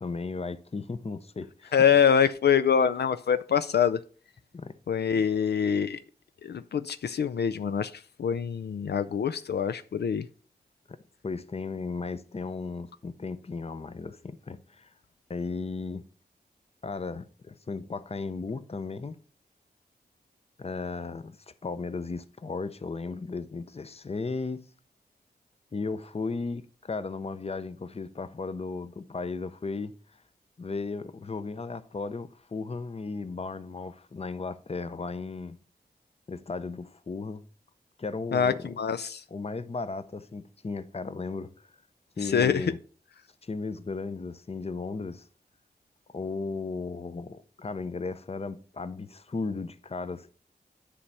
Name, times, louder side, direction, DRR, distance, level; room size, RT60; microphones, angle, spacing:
voice 1, 0.0-1.8 4.5-4.8 11.2-14.9 15.3-16.1 16.8-19.2 20.6-21.4 21.6-24.6 25.7-29.9 30.6-35.6 36.3-37.4 38.0-38.8 39.3-41.5 42.2-42.8 43.4-45.3 46.1-50.3, left 4 dB, 35° left, 0.6 m, -35 dB
voice 2, 1.7-4.0 4.9-6.0 6.4-10.3 38.3-39.2 42.2-42.7, left 7 dB, 75° left, 0.4 m, -25 dB
10.0 x 3.3 x 5.5 m
wide cardioid pair, 75°, 17 cm